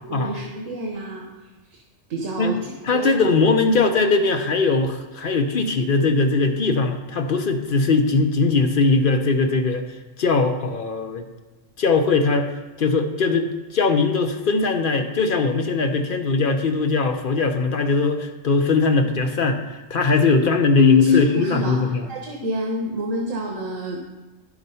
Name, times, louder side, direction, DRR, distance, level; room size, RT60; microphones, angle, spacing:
voice 1, 0.0-1.2 1.7-1.8 2.1-3.1 20.8-21.8 22.1-24.0, left 4 dB, 80° right, 0 dB, 1.5 m, -23 dB
voice 2, 2.8-9.9 10.2-11.3 11.8-12.5 12.8-22.1, left 3 dB, 50° left, 6 dB, 0.7 m, -20 dB
10.5 x 5.9 x 5.4 m, 1.2 s
omnidirectional pair, 1.3 m